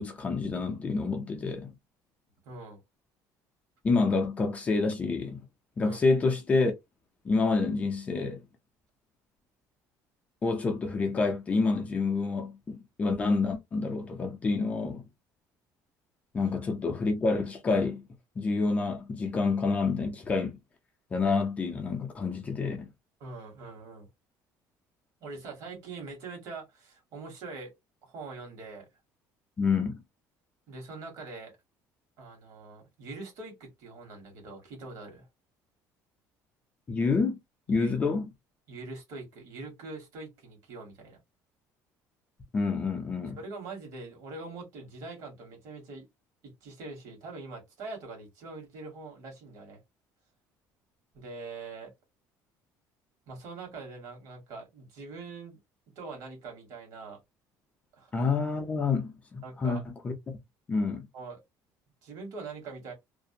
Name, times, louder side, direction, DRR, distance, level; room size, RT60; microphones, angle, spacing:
voice 1, 0.0-1.7 3.8-5.4 5.8-6.7 7.2-8.4 10.4-15.1 16.3-18.0 18.4-20.6 21.1-22.9 29.6-30.0 36.9-37.4 37.7-38.2 42.5-43.4 58.1-60.1 60.7-61.1, left 4 dB, 20° left, 0.4 m, -28 dB
voice 2, 2.4-2.8 5.8-6.0 23.2-24.1 25.2-27.7 28.1-28.9 30.7-31.6 32.2-35.3 37.7-38.0 38.7-41.2 43.4-46.1 46.4-49.8 51.1-51.9 53.3-55.6 55.9-57.2 58.0-58.1 59.4-59.8 61.1-61.4 62.0-62.9, right 3 dB, 55° right, 1.3 m, -43 dB
2.5 x 2.0 x 2.6 m
cardioid pair, 165°, 7 cm